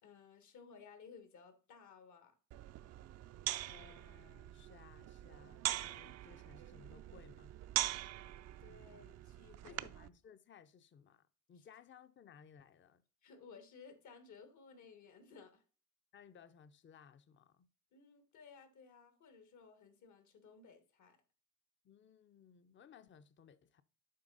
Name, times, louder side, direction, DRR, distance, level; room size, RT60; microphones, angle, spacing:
voice 1, 0.0-2.3 8.6-9.8 11.6-11.7 13.2-15.6 17.9-21.2, left 5 dB, 70° left, 1.4 m, -58 dB
sound 1, 2.5-10.1, right 13 dB, 60° right, 0.4 m, -43 dB
voice 2, 3.6-7.5 9.6-11.2 11.5-13.0 16.1-17.7 21.8-23.8, left 7 dB, 40° left, 0.6 m, -60 dB
7.5 x 4.6 x 3.8 m
cardioid pair, 90°, 30 cm